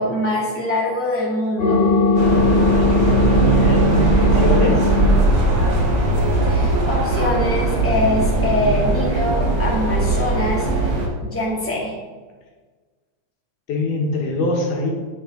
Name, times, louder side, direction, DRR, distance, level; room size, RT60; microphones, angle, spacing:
voice 1, 0.0-1.9 6.4-11.9, left 1 dB, 5° left, -4 dB, 1.4 m, -23 dB
sound 1, 1.6-6.6, left 4 dB, 30° left, 1.1 m, -20 dB
sound 2, 2.2-11.1, right 3 dB, 50° right, 1.9 m, -19 dB
voice 2, 3.4-4.9 13.7-14.9, left 2 dB, 85° left, 0 dB, 3.0 m, -23 dB
8.8 x 8.3 x 3.8 m, 1.4 s
omnidirectional pair, 3.4 m